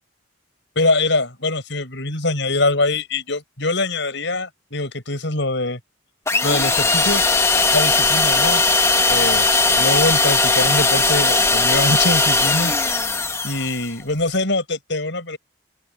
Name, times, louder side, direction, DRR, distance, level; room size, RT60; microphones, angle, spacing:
voice 1, 0.7-5.8 6.4-7.2 7.7-8.6 9.1-9.5 9.7-12.7 13.4-15.4, left 2 dB, 60° left, 6.3 m, -23 dB
sound 1, 6.3-13.9, left 3 dB, 15° left, 1.9 m, -18 dB
open air
head